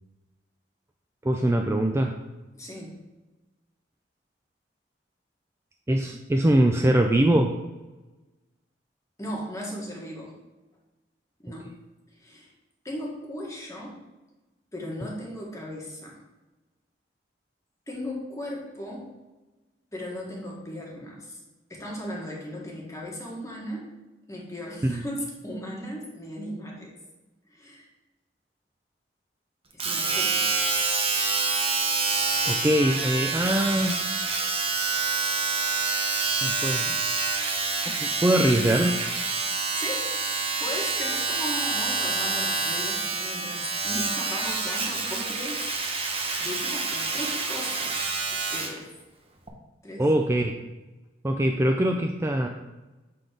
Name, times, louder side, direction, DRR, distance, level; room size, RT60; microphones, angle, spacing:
voice 1, 1.2-2.2 5.9-7.5 24.8-25.0 32.5-34.0 36.4-37.0 37.9-39.0 50.0-50.5 51.2-52.5, right 1 dB, 15° right, 3 dB, 0.4 m, -22 dB
voice 2, 2.5-3.0 9.2-10.3 11.4-11.7 12.1-12.5 12.8-14.0 14.7-16.2 17.9-19.1 19.9-21.4 21.7-23.9 24.3-26.9 27.5-27.9 29.7-30.5 39.7-40.1 40.6-48.9 49.8-50.1, left 1 dB, 20° left, -3 dB, 1.7 m, -37 dB
Domestic sounds home sounds, 29.8-48.8 49.5-49.6, right 4 dB, 35° right, 0.9 m, -27 dB
7.5 x 4.0 x 5.0 m, 1.1 s
head